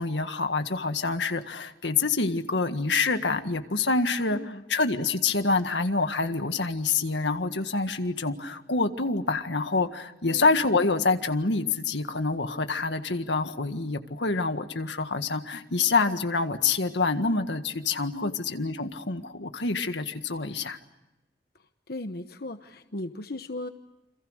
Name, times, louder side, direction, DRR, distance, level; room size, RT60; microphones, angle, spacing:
voice 1, 0.0-4.4 4.7-20.8, left 3 dB, 90° left, 8 dB, 1.7 m, -27 dB
voice 2, 4.3-4.6 10.3-10.5 18.1-18.4 21.9-23.7, left 2 dB, 60° left, 8 dB, 1.1 m, -37 dB
29.0 x 26.5 x 6.5 m, 0.98 s
head